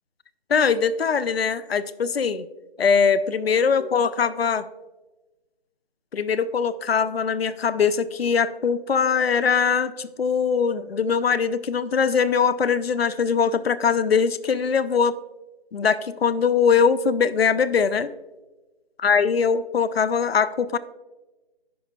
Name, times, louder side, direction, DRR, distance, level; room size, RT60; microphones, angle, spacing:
voice 1, 0.5-2.5 2.8-4.6 6.1-15.2 15.7-18.1 19.0-20.8, left 6 dB, 75° left, 16 dB, 0.5 m, -21 dB
15.5 x 5.2 x 2.2 m, 1.1 s
figure-of-eight pair, 165°, 30 cm